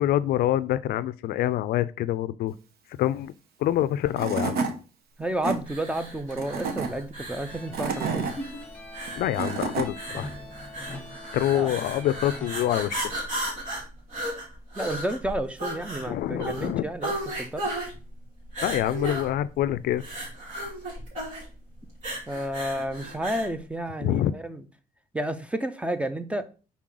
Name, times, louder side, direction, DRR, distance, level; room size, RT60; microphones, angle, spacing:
voice 1, 0.0-2.6 3.0-3.3 3.6-4.5 9.2-10.3 11.3-13.1 16.1-16.8 18.6-20.0 24.0-24.3, left 12 dB, 80° left, 0.4 m, -26 dB
Tools / Wood, 3.8-3.9 4.2-4.7 5.2-5.6 6.3-6.9 7.5-8.3 9.1-9.9, right 4 dB, 80° right, 1.1 m, -29 dB
voice 2, 5.2-8.3 11.5-11.7 14.7-17.6 22.3-24.6 25.1-26.5, right 1 dB, 10° right, 0.6 m, -31 dB
sound 1, 5.6-23.5, right 1 dB, 55° right, 2.7 m, -35 dB
sound 2, 7.5-12.7, left 2 dB, 10° left, 1.6 m, -42 dB
6.1 x 4.1 x 3.8 m
cardioid pair, 115°, 16 cm